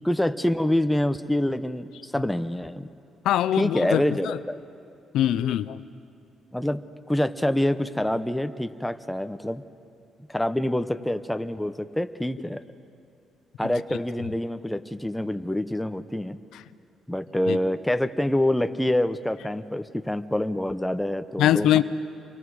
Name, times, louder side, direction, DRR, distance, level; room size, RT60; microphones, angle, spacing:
voice 1, 0.0-2.9 3.6-4.6 6.5-6.8 7.1-9.6 10.3-12.6 13.6-16.4 17.1-21.8, left 1 dB, 5° left, 10 dB, 0.8 m, -26 dB
voice 2, 3.2-4.4 5.1-5.8 17.5-17.6 21.4-21.8, left 12 dB, 85° left, 14 dB, 0.5 m, -22 dB
29.0 x 24.0 x 4.8 m, 2.6 s
cardioid pair, 90°, 0 cm